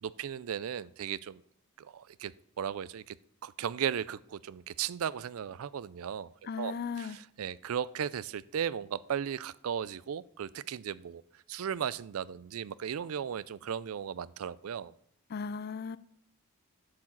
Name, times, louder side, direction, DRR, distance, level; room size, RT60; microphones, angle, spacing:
voice 1, 0.0-1.4 1.8-2.3 2.6-3.2 3.4-6.3 6.6-11.2 11.5-14.9, right 8 dB, 70° right, 19 dB, 0.4 m, -36 dB
voice 2, 6.5-7.2 15.3-16.0, left 5 dB, 45° left, 17 dB, 0.4 m, -36 dB
11.5 x 4.8 x 7.3 m, 0.71 s
head